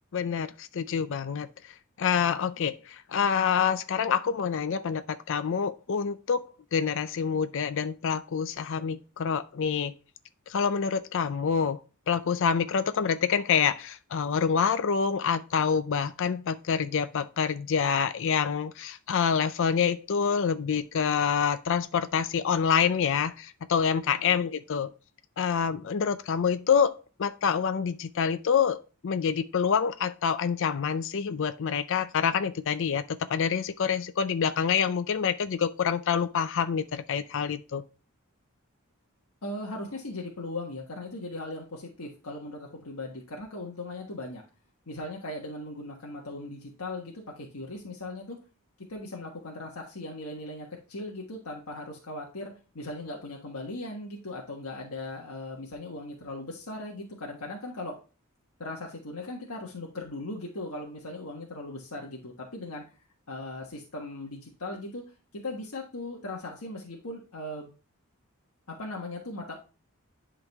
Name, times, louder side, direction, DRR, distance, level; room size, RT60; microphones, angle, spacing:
voice 1, 0.1-6.4 6.7-9.9 10.5-11.8 12.1-24.9 25.4-28.8 29.0-37.8, left 6 dB, 60° left, 0.4 m, -27 dB
voice 2, 39.4-44.4 44.9-48.4 48.8-58.0 58.6-62.8 63.3-65.0 65.3-67.7 68.7-69.5, left 2 dB, 80° left, 1.4 m, -38 dB
10.5 x 3.9 x 3.5 m
head